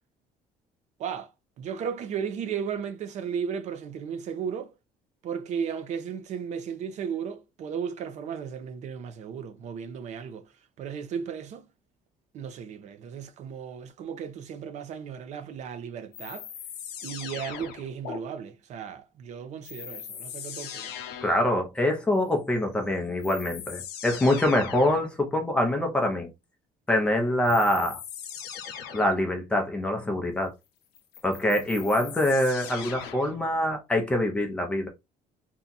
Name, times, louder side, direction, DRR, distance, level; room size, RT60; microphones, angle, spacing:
voice 1, 1.6-4.7 5.2-10.5 10.8-11.7 12.3-16.5 17.0-20.9, right 7 dB, 45° right, 0.6 m, -35 dB
sound 1, 16.1-18.2 19.6-21.5 22.7-22.8 23.2-25.1 27.4-29.2 30.9-33.4, left 8 dB, 85° left, 0.7 m, -40 dB
voice 2, 21.2-26.3 26.9-28.0 28.9-30.5 31.2-34.9, left 1 dB, 5° left, 0.6 m, -25 dB
2.8 x 2.4 x 3.9 m
cardioid pair, 175°, 16 cm